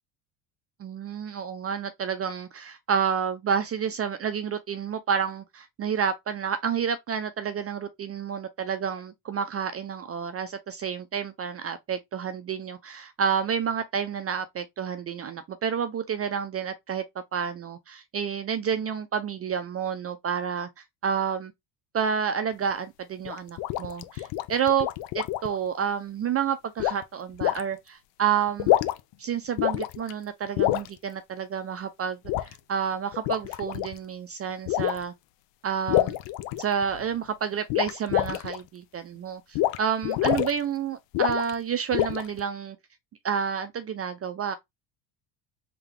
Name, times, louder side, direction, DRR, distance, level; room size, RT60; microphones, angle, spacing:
voice 1, 0.8-17.0 17.3-20.7 21.0-21.5 21.9-24.9 25.1-28.7 29.2-35.1 35.6-36.2 36.6-42.8 43.2-44.6, right 7 dB, 30° right, 0.5 m, -29 dB
sound 1, 23.2-25.6 26.8-27.0 27.4-27.6 28.5-29.1 29.6-30.1 30.6-30.9 32.2-32.5 33.1-33.9 34.7-35.0 35.9-37.0 37.7-38.6 39.5-39.8 40.0-40.5 41.1-41.5 41.9-42.4, left 14 dB, 70° left, 0.6 m, -26 dB
3.7 x 2.8 x 3.3 m
cardioid pair, 105°, 46 cm